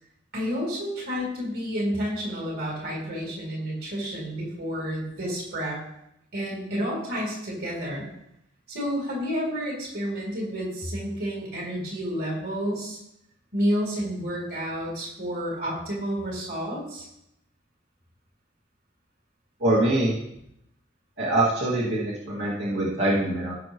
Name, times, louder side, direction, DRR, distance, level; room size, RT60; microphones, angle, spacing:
voice 1, 0.3-5.8 6.3-8.1 8.7-13.0 13.5-17.1, equal, 55° right, -3 dB, 3.6 m, -30 dB
voice 2, 19.6-20.2 21.2-23.6, right 1 dB, 80° right, -7 dB, 2.3 m, -24 dB
16.5 x 6.6 x 3.1 m, 0.80 s
head